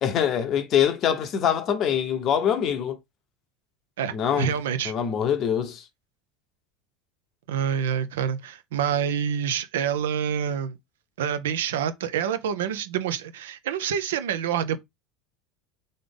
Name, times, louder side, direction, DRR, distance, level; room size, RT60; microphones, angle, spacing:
voice 1, 0.0-3.0 4.1-4.5 4.8-5.8, left 9 dB, 40° left, 0.7 m, -24 dB
voice 2, 4.0-4.9 7.5-10.8 11.2-14.8, right 8 dB, 65° right, 0.5 m, -27 dB
3.9 x 3.3 x 3.7 m
figure-of-eight pair, 70°, 0 cm